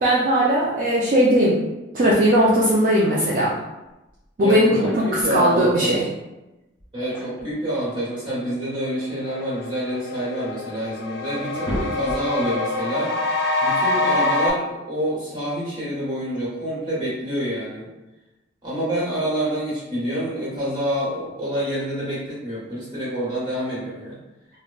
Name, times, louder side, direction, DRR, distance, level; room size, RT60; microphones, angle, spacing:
voice 1, 0.0-1.6 1.9-3.5 4.4-5.0 5.3-6.1, equal, 45° right, -6 dB, 0.4 m, -18 dB
sound 1, 4.2-4.3 4.6-5.3 6.8-7.6 8.9-10.3 10.9-11.0 11.3-12.5, equal, 25° left, 1.0 m, -33 dB
voice 2, 4.4-6.1 6.9-13.1 13.6-17.9 18.6-24.2, equal, 25° right, -9 dB, 1.2 m, -27 dB
sound 2, 8.7-8.8 9.2-14.5, left 2 dB, 60° left, 0.4 m, -25 dB
3.5 x 2.1 x 2.3 m, 1.0 s
head